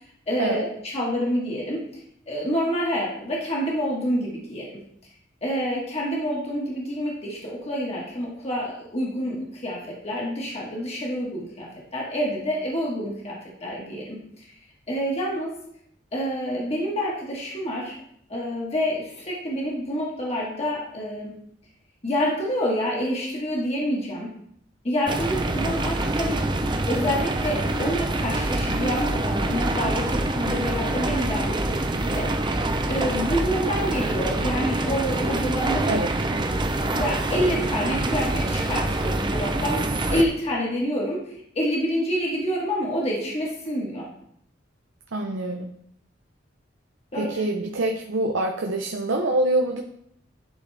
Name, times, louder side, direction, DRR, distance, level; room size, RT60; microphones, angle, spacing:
voice 1, 0.3-1.8 2.3-4.7 5.4-14.5 14.9-15.6 16.1-17.9 18.3-21.4 22.0-24.4 24.8-26.5 26.9-32.3 32.9-35.9 36.3-36.4 36.9-41.2 41.5-44.1 47.1-47.3, equal, 35° left, -4 dB, 1.6 m, -27 dB
sound 1, 25.1-40.2, right 2 dB, 25° right, 0.6 m, -25 dB
voice 2, 45.1-45.7 47.1-49.8, right 2 dB, 85° right, 3 dB, 0.7 m, -25 dB
11.0 x 4.2 x 3.3 m, 0.71 s
head